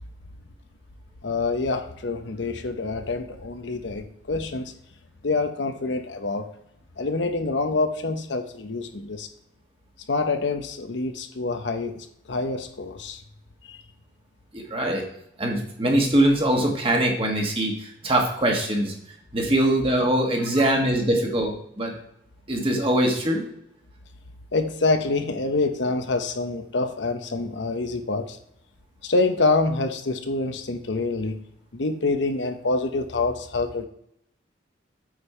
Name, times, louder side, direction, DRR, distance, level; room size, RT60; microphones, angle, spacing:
voice 1, 1.2-4.7 5.2-6.5 7.0-9.3 10.1-13.2 13.6-13.8 20.6-20.7 24.5-28.4 29.0-31.4 31.7-33.8, left 3 dB, 65° left, 7 dB, 0.8 m, -26 dB
voice 2, 14.5-15.0 15.4-18.9 19.3-21.9 22.5-23.5, right 1 dB, 30° right, 0 dB, 1.6 m, -22 dB
8.6 x 5.3 x 4.3 m, 0.75 s
head